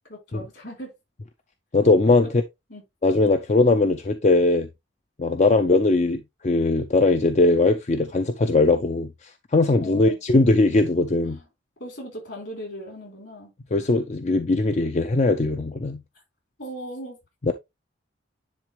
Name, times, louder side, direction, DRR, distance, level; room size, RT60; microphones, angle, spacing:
voice 1, 0.1-0.9 2.7-2.8 3.2-3.4 5.4-5.6 9.8-10.2 11.2-11.5 11.8-13.5 16.6-17.2, equal, 65° left, 4.2 m, -38 dB
voice 2, 1.7-2.3 3.0-4.7 5.2-11.4 13.7-16.0 17.4-17.5, left 2 dB, 40° left, 0.5 m, -20 dB
10.5 x 3.5 x 3.2 m
head